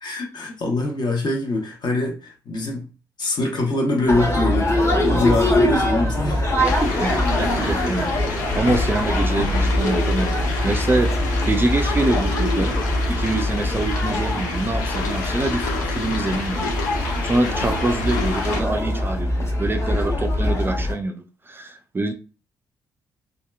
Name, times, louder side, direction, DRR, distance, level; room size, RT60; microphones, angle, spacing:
voice 1, 0.0-2.9 3.2-6.6, left 2 dB, 45° left, 0.8 m, -24 dB
sound 1, 4.1-20.9, left 1 dB, 25° left, 1.0 m, -23 dB
sound 2, 6.6-18.6, left 3 dB, 80° left, 0.5 m, -29 dB
voice 2, 6.8-11.1 11.5-12.8 13.1-22.1, right 2 dB, 20° right, 0.4 m, -25 dB
2.7 x 2.3 x 2.2 m
figure-of-eight pair, 45°, 10 cm